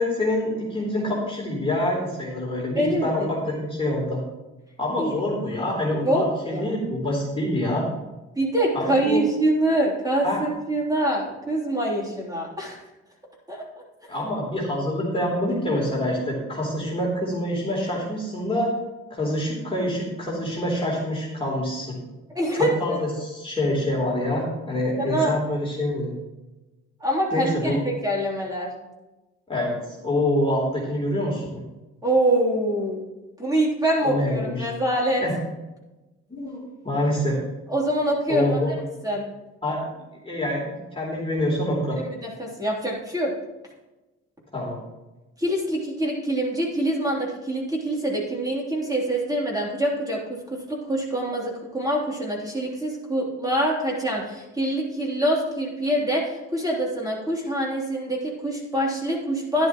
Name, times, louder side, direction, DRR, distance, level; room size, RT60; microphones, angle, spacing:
voice 1, 0.0-4.2 4.8-7.9 8.7-9.2 10.2-10.4 14.1-18.7 19.1-22.0 22.5-26.1 27.3-27.8 29.5-31.5 34.0-34.7 35.2-35.4 36.3-37.4 38.3-38.7 39.6-39.9 40.2-42.0 44.5-44.8, left 1 dB, 20° left, -5 dB, 3.4 m, -26 dB
voice 2, 2.7-3.3 5.0-5.1 6.0-6.7 8.3-12.8 13.5-13.6 22.3-22.7 25.0-25.3 27.0-28.7 32.0-33.0 33.4-35.2 37.7-38.8 39.0-39.3 42.0-43.3 45.4-59.7, right 1 dB, 10° right, -3 dB, 3.4 m, -25 dB
11.0 x 11.0 x 3.1 m, 1.1 s
cardioid pair, 90°, 30 cm